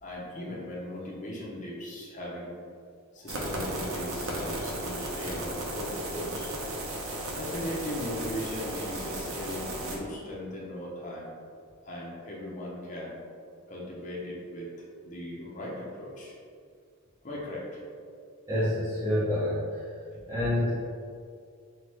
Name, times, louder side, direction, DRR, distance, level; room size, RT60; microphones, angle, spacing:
voice 1, 0.0-2.5 3.1-6.5 7.4-11.3 11.8-13.2 13.7-14.7 15.0-16.3 17.2-17.8, left 1 dB, 35° left, -4 dB, 0.8 m, -38 dB
sound 1, 3.3-10.0, right 1 dB, 70° right, 0.7 m, -35 dB
voice 2, 18.5-19.6 20.3-20.7, left 1 dB, 15° right, -12 dB, 0.9 m, -27 dB
5.9 x 2.3 x 3.0 m, 2.2 s
head